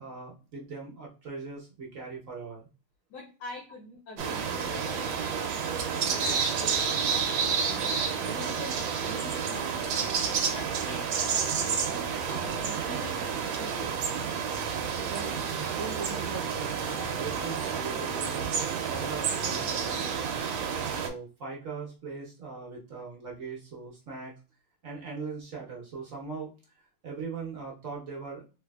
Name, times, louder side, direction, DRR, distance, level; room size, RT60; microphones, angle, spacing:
voice 1, 0.0-2.7 15.1-20.5 20.9-24.4 24.8-28.4, right 4 dB, 50° right, -2 dB, 1.1 m, -40 dB
voice 2, 3.1-14.2, left 2 dB, 65° left, 0 dB, 1.2 m, -45 dB
sound 1, 4.2-21.1, right 6 dB, 75° right, 1.4 m, -30 dB
3.3 x 3.2 x 2.3 m, 0.31 s
omnidirectional pair, 2.3 m